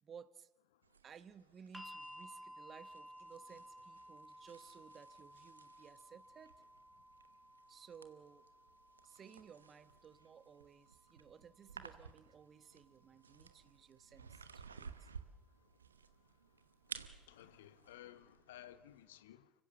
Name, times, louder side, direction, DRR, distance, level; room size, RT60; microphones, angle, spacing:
voice 1, 0.0-0.5 1.0-6.5 7.7-8.5 9.0-15.1, right 7 dB, 40° right, 1.2 m, -58 dB
sound 1, 0.8-19.1, right 5 dB, 85° right, 1.0 m, -57 dB
sound 2, 1.7-13.8 14.9-15.0, equal, 5° left, 1.9 m, -58 dB
voice 2, 17.3-19.5, left 12 dB, 75° left, 1.0 m, -56 dB
30.0 x 15.5 x 7.3 m
figure-of-eight pair, 55°, 0 cm